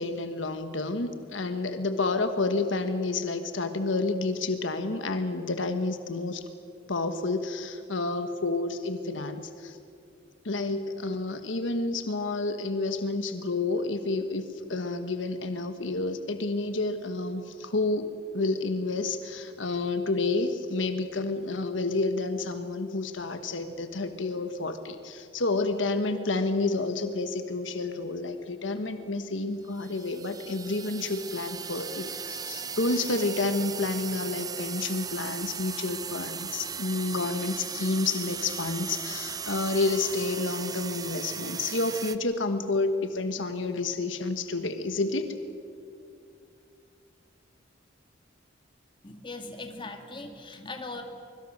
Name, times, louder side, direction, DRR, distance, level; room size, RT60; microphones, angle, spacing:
voice 1, 0.0-6.4 6.9-9.8 10.4-45.3, left 3 dB, 80° left, 8 dB, 1.3 m, -30 dB
sound 1, 29.7-42.2, right 6 dB, 20° right, 0.6 m, -37 dB
voice 2, 49.0-51.0, left 3 dB, 25° left, 4 dB, 2.2 m, -39 dB
24.5 x 23.0 x 6.5 m, 2.5 s
head